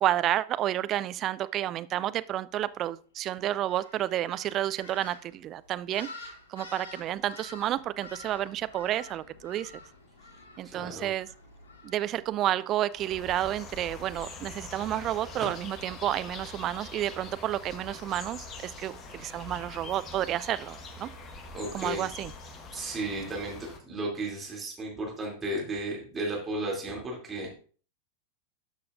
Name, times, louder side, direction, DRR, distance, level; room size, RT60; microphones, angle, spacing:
voice 1, 0.0-9.7 10.6-11.3 11.8-21.1 21.7-22.3, right 12 dB, 35° right, 15 dB, 0.4 m, -30 dB
sound 1, 3.6-12.7, left 2 dB, 65° left, 2.4 m, -49 dB
voice 2, 10.6-11.1 21.5-22.1 22.7-27.5, right 1 dB, 15° right, -2 dB, 2.8 m, -34 dB
sound 2, 12.9-23.8, left 3 dB, 30° left, 1.4 m, -44 dB
12.5 x 6.7 x 2.6 m, 0.41 s
figure-of-eight pair, 90°, 0 cm